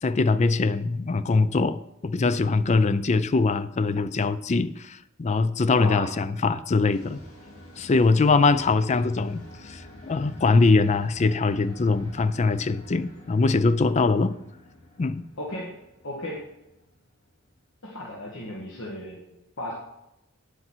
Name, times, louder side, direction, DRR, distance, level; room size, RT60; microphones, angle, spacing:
voice 1, 0.0-7.2 7.8-14.4 15.0-15.3, left 3 dB, 30° left, 0.4 m, -22 dB
voice 2, 5.8-6.1 15.4-15.7 16.0-16.4 17.8-19.7, left 1 dB, 60° left, 1.7 m, -35 dB
sound 1, 6.9-17.7, left 1 dB, 75° left, 3.8 m, -48 dB
9.1 x 8.1 x 4.5 m
head